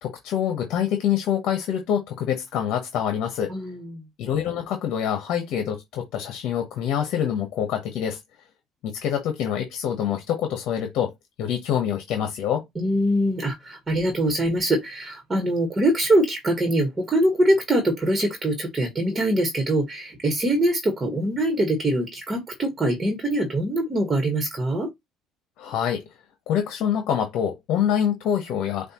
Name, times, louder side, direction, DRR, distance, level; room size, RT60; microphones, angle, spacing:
voice 1, 0.0-3.5 4.2-8.2 8.8-11.1 11.4-12.6 25.6-26.0 26.5-28.9, left 9 dB, 65° left, 1.0 m, -26 dB
voice 2, 3.5-4.0 12.7-24.9, right 1 dB, 20° right, 1.4 m, -23 dB
6.5 x 2.5 x 2.9 m
cardioid pair, 105°, 0 cm